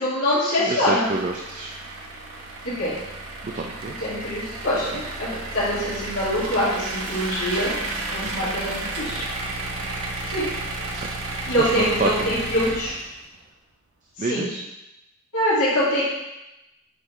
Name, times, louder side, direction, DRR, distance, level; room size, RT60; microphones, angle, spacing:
voice 1, 0.0-1.1 2.6-3.0 4.0-7.7 8.1-9.2 10.3-10.5 11.5-12.9 14.2-14.5 15.3-16.0, equal, 75° left, -10 dB, 2.2 m, -24 dB
voice 2, 0.7-1.7 3.4-3.9 8.2-8.3 11.6-12.3 14.2-14.6, right 3 dB, 35° right, 1 dB, 0.4 m, -28 dB
sound 1, 1.0-13.4, right 2 dB, 85° right, 0.9 m, -32 dB
7.9 x 3.8 x 3.1 m, 0.94 s
head